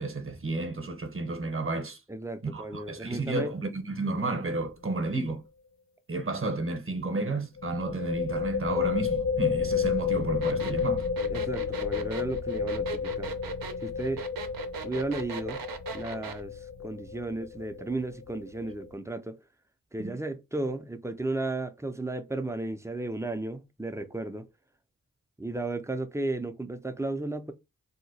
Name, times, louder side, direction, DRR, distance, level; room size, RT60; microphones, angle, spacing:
voice 1, 0.0-2.0 2.4-5.4 6.1-11.1 20.0-20.2, right 2 dB, 40° right, 0.8 m, -32 dB
voice 2, 2.1-3.5 11.3-13.4 13.8-14.2 14.8-15.6 15.9-19.4 19.9-24.5 25.4-27.5, right 2 dB, 10° right, 0.4 m, -34 dB
sound 1, 4.4-4.7 5.0-5.1 7.6-18.9, left 6 dB, 55° left, 0.9 m, -31 dB
sound 2, 10.4-16.4, right 7 dB, 90° right, 0.6 m, -39 dB
2.8 x 2.1 x 4.0 m
wide cardioid pair, 65°, 34 cm